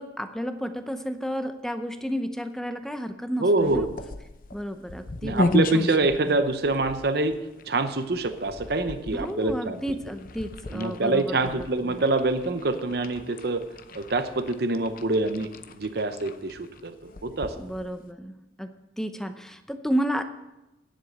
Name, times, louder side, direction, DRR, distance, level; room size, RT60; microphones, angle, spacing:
voice 1, 0.0-3.9 4.5-5.9 6.2-6.4 9.1-12.0 17.6-18.7 19.0-20.2, equal, 5° left, 8 dB, 0.7 m, -32 dB
voice 2, 3.4-3.9 5.2-7.3 7.7-9.8 10.7-13.6 13.9-17.5, right 2 dB, 60° right, 9 dB, 0.8 m, -25 dB
sound 1, 3.6-18.1, left 2 dB, 50° left, 0.7 m, -35 dB
10.0 x 7.7 x 7.8 m, 0.98 s
head